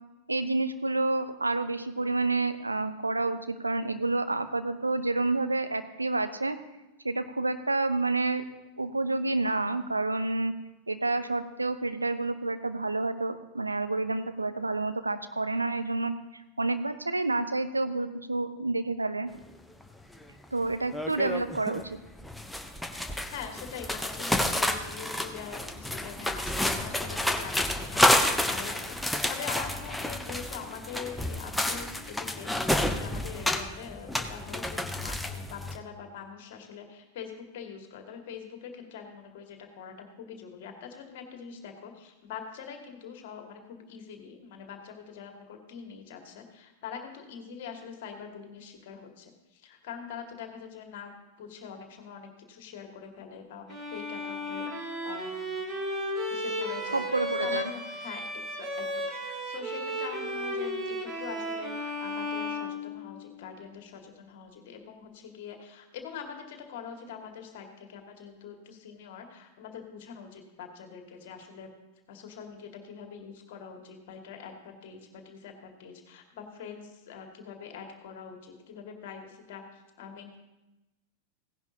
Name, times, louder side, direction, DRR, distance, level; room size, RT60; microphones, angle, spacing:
voice 1, 0.3-6.6 7.0-8.4 8.8-10.5 10.9-19.3 20.5-22.0 56.9-57.7, right 2 dB, 80° right, 10 dB, 0.7 m, -29 dB
sound 1, 19.8-19.9 20.2-20.4 20.9-21.8 22.1-35.8, left 1 dB, 5° left, 0.8 m, -30 dB
voice 2, 23.3-51.1 51.4-55.7 56.3-58.2 58.5-71.7 72.1-80.4, left 7 dB, 50° left, 4 dB, 2.0 m, -44 dB
Bowed string instrument, 53.7-63.4, equal, 25° right, 2.3 m, -34 dB
17.0 x 10.5 x 2.8 m, 1.0 s
figure-of-eight pair, 90°, 0 cm